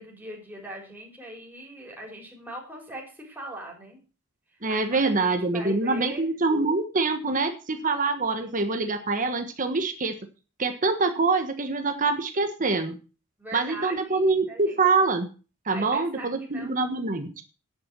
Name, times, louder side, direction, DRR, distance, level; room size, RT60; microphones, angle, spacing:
voice 1, 0.0-4.0 4.5-6.3 8.4-8.5 13.4-14.8 15.7-16.7, right 1 dB, 10° right, -2 dB, 4.3 m, -41 dB
voice 2, 4.6-10.1 10.6-13.0 13.5-15.3 15.6-17.4, right 3 dB, 40° right, 6 dB, 1.4 m, -25 dB
10.5 x 8.8 x 6.2 m, 0.34 s
head